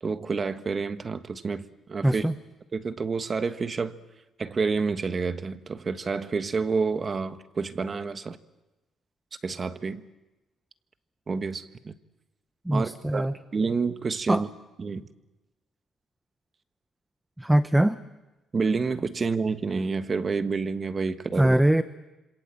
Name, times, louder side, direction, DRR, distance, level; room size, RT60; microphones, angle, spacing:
voice 1, 0.0-2.3 2.7-4.0 4.4-8.4 9.4-10.0 11.3-12.0 12.7-13.3 13.5-14.5 14.8-15.0 18.5-21.5, right 4 dB, 35° right, 1.4 m, -29 dB
voice 2, 2.0-2.3 12.6-13.3 14.3-14.4 17.4-18.0 21.4-21.8, right 1 dB, 10° right, 0.9 m, -22 dB
27.0 x 27.0 x 7.7 m
cardioid pair, 90°, 0 cm